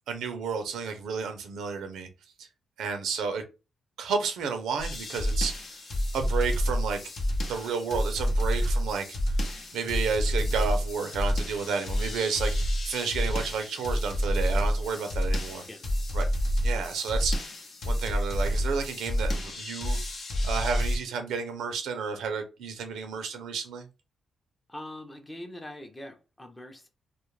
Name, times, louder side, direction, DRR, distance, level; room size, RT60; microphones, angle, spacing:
voice 1, 0.1-2.1 2.4-2.5 2.8-3.4 4.0-5.8 6.1-7.0 7.4-9.4 9.7-15.6 16.1-16.3 16.6-17.4 17.8-20.0 20.4-23.9, right 5 dB, 85° right, 0.5 m, -31 dB
sound 1, 4.8-21.0, equal, 65° left, 0.7 m, -29 dB
voice 2, 24.7-26.9, left 1 dB, 20° left, 0.6 m, -42 dB
2.3 x 2.0 x 3.1 m
cardioid pair, 85°, 0 cm